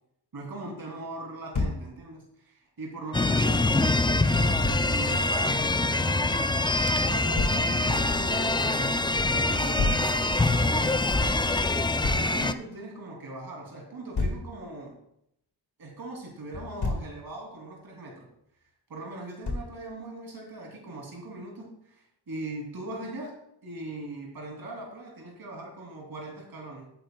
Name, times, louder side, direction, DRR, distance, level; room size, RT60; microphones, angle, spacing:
voice 1, 0.3-6.3 7.0-11.4 12.1-14.9 15.8-18.3 18.9-23.4 23.6-26.9, right 2 dB, 60° right, -1 dB, 2.9 m, -40 dB
Thump thud, 1.5-1.8 4.6-4.8 7.4-7.6 9.8-10.1 12.0-12.3 14.1-14.5 16.5-17.1 19.4-19.8, left 3 dB, 65° left, 1.9 m, -28 dB
sound 1, 3.1-12.5, left 2 dB, 10° left, 0.4 m, -24 dB
15.5 x 9.3 x 2.3 m, 0.76 s
wide cardioid pair, 120°, 42 cm